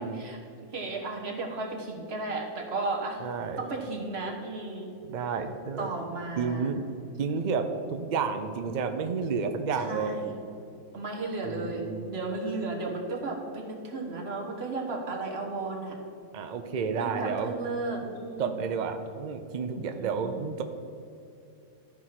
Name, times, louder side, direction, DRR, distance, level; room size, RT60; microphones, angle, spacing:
voice 1, 0.0-3.2 3.6-4.9 5.8-6.7 9.7-10.3 10.9-16.0 17.0-18.6 19.9-20.4, right 3 dB, 45° right, 0 dB, 1.6 m, -34 dB
voice 2, 3.2-3.7 5.0-5.9 6.4-6.8 7.2-10.2 11.5-12.0 16.3-17.5 18.4-20.6, right 5 dB, 75° right, 7 dB, 0.4 m, -31 dB
13.0 x 4.7 x 5.8 m, 2.6 s
omnidirectional pair, 1.5 m